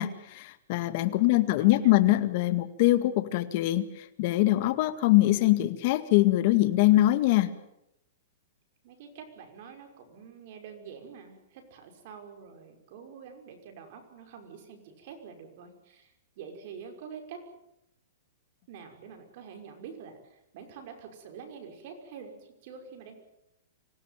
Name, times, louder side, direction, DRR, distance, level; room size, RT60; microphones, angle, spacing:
voice 1, 0.0-7.5, left 16 dB, 45° left, 11 dB, 2.0 m, -23 dB
voice 2, 1.1-1.9 8.8-17.4 18.7-23.2, right 6 dB, 50° right, 5 dB, 5.6 m, -46 dB
25.5 x 17.0 x 9.2 m, 0.84 s
hypercardioid pair, 155°, 0 cm